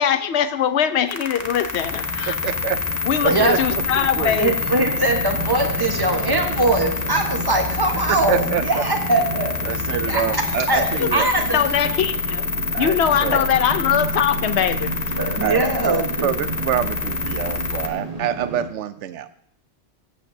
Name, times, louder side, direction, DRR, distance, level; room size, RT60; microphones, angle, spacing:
voice 1, 0.0-2.3 3.1-4.5 11.0-11.1 11.5-12.4 12.8-14.9, left 9 dB, 70° left, 12 dB, 0.9 m, -21 dB
sound 1, 1.1-17.9, left 5 dB, 40° left, 0.9 m, -27 dB
sound 2, 1.8-18.7, right 3 dB, 35° right, 1.0 m, -32 dB
voice 2, 2.3-2.8 3.2-3.6 4.0-4.4 8.1-8.8 9.6-11.3 12.7-13.4 15.4-19.3, right 10 dB, 80° right, 13 dB, 0.9 m, -26 dB
voice 3, 4.4-9.7 10.1-10.4 10.7-10.8 11.1-11.6 15.2-16.4, right 2 dB, 20° right, 2 dB, 1.2 m, -21 dB
14.5 x 8.0 x 2.7 m, 0.66 s
omnidirectional pair, 1.2 m